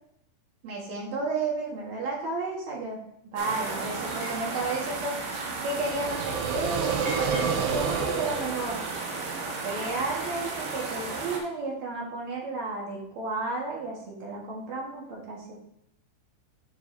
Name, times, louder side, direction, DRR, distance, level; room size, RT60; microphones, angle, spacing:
voice 1, 0.6-3.0 3.3-5.2 5.6-8.8 9.6-15.5, right 3 dB, 55° right, -2 dB, 2.2 m, -32 dB
sound 1, 3.3-11.4, right 3 dB, 70° right, 3.2 m, -34 dB
sound 2, 5.7-9.7, right 6 dB, 85° right, 2.9 m, -30 dB
12.0 x 4.9 x 2.6 m, 0.76 s
omnidirectional pair, 4.8 m